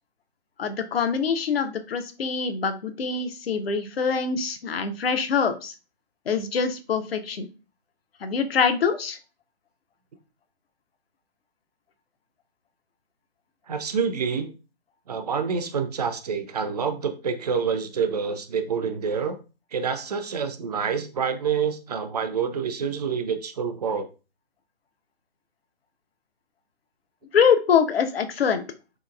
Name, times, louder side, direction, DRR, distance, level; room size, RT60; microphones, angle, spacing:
voice 1, 0.6-5.7 6.3-7.5 8.2-9.2 27.3-28.6, left 6 dB, 70° left, 8 dB, 0.6 m, -24 dB
voice 2, 13.7-14.5 15.1-19.4 19.7-24.1, right 6 dB, 40° right, 8 dB, 0.4 m, -27 dB
3.0 x 2.8 x 2.3 m, 0.32 s
hypercardioid pair, 145°, 31 cm